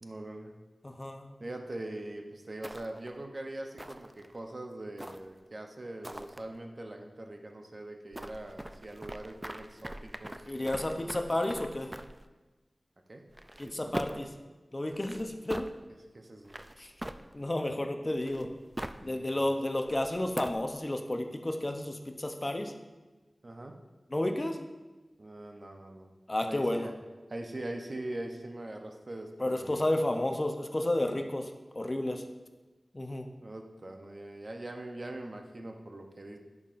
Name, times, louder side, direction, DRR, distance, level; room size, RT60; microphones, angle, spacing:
voice 1, 0.0-0.5 1.4-11.3 13.1-13.2 13.6-14.2 16.1-16.6 19.0-19.5 23.4-23.8 25.2-26.1 26.5-26.9 27.3-29.9 33.4-36.4, right 1 dB, 50° right, 3 dB, 0.7 m, -42 dB
voice 2, 0.8-1.3 10.5-11.9 13.6-14.3 14.7-15.6 16.8-16.9 17.3-18.5 19.0-22.7 24.1-24.6 26.3-26.9 29.4-31.5 31.7-32.2 32.9-33.3, left 1 dB, 35° left, 5 dB, 0.7 m, -31 dB
sound 1, 2.6-3.2 3.8-4.4 5.0-5.5 6.0-6.4 8.1-12.3 13.3-14.3 14.9-15.7 16.4-17.6 18.1-19.1 19.7-20.7, right 1 dB, 20° right, 0.3 m, -42 dB
10.5 x 5.6 x 2.5 m, 1.2 s
wide cardioid pair, 60°, 0 cm